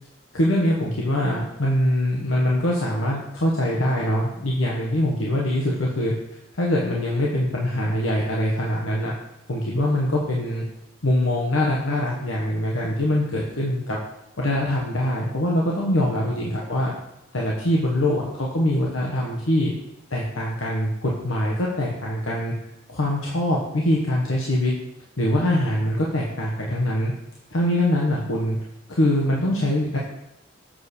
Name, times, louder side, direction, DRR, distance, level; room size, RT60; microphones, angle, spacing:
voice 1, 0.3-6.1 6.6-9.1 9.5-10.6 11.0-14.0 14.4-16.9 17.3-19.7 20.1-22.5 22.9-24.7 25.2-27.1 27.5-28.6 28.9-30.0, left 1 dB, 80° left, -3 dB, 1.2 m, -23 dB
7.5 x 6.7 x 4.3 m, 0.87 s
head